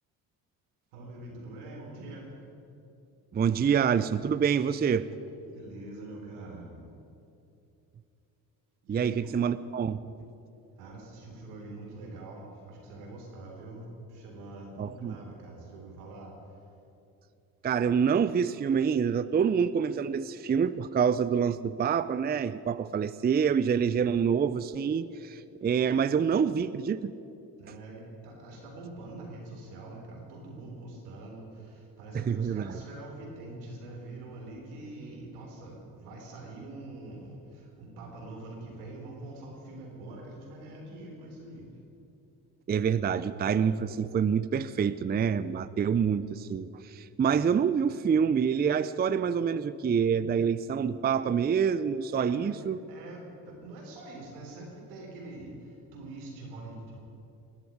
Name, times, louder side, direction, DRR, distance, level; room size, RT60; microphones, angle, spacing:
voice 1, 0.9-2.3 5.5-6.8 8.8-9.3 10.8-16.3 27.6-41.7 52.1-52.6 52.9-57.0, right 2 dB, 85° right, 0 dB, 3.8 m, -44 dB
voice 2, 3.3-5.1 8.9-10.0 14.8-15.2 17.6-27.1 32.1-32.8 42.7-52.8, right 7 dB, 20° right, 14 dB, 0.5 m, -27 dB
18.5 x 8.1 x 9.5 m, 2.7 s
hypercardioid pair, 60°, 44 cm